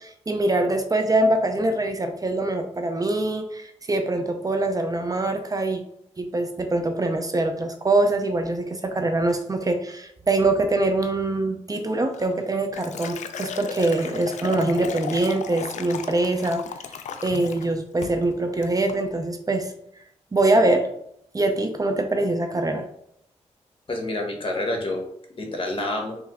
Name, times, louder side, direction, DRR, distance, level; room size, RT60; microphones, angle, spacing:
voice 1, 0.0-5.8 6.2-16.6 17.2-19.7 20.3-20.9 21.3-22.9, right 2 dB, 30° right, 6 dB, 0.5 m, -23 dB
Liquid, 12.1-17.7 18.0-18.3 18.6-19.0, left 7 dB, 75° left, 0.4 m, -35 dB
voice 2, 23.9-25.1 25.4-26.2, left 2 dB, 45° left, 2 dB, 1.1 m, -28 dB
3.2 x 3.0 x 3.5 m, 0.73 s
cardioid pair, 65°, 12 cm